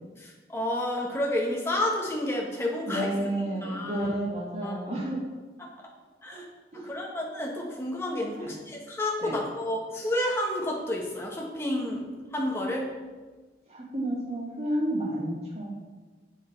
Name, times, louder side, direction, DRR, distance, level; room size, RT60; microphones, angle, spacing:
voice 1, 0.2-3.1 3.6-4.1 4.6-4.7 5.6-5.7 6.2-6.4 6.7-12.9, left 1 dB, 15° left, -1 dB, 1.3 m, -30 dB
voice 2, 2.9-5.2 6.3-6.4 6.7-6.9 8.4-8.5 9.2-9.4 13.7-15.7, right 1 dB, 35° right, -3 dB, 1.5 m, -31 dB
7.6 x 5.6 x 4.6 m, 1.3 s
head